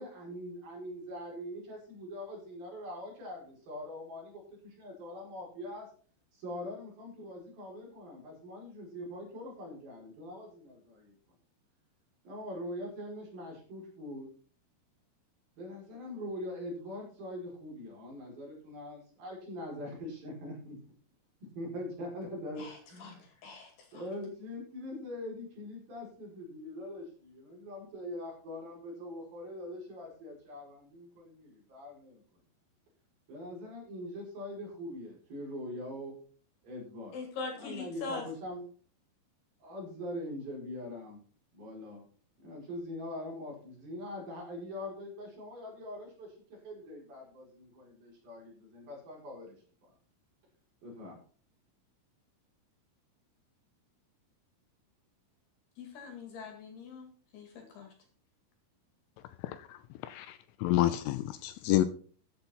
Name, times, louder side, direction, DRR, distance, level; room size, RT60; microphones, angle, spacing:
voice 1, 0.0-5.9 6.3-11.1 12.2-14.3 15.6-20.8 21.6-23.3 23.9-32.2 33.3-36.2 36.6-37.2 37.6-38.6 39.6-41.2 41.5-42.0 42.4-49.6 50.8-51.2, left 1 dB, 45° right, 6.2 m, -43 dB
voice 2, 22.6-23.1 23.4-24.0 37.1-38.3 55.8-57.9, left 4 dB, 60° left, 3.6 m, -42 dB
voice 3, 59.4-61.9, left 14 dB, 80° left, 3.1 m, -30 dB
14.0 x 8.5 x 4.3 m
omnidirectional pair, 5.9 m